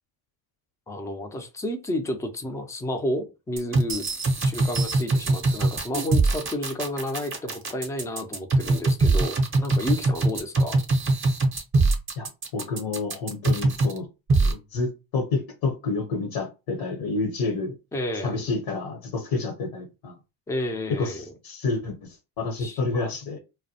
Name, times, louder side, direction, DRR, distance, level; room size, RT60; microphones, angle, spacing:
voice 1, 0.9-4.1 4.4-10.8 17.9-18.5 20.5-21.3 22.6-23.1, left 1 dB, 5° left, 0.4 m, -31 dB
sound 1, 3.6-14.0 14.3-14.5, right 2 dB, 25° right, 0.7 m, -22 dB
voice 2, 12.5-14.1 14.4-17.7 18.2-20.2 21.0-23.4, left 3 dB, 70° left, 0.9 m, -29 dB
2.2 x 2.1 x 2.7 m
supercardioid pair, 80°, 47 cm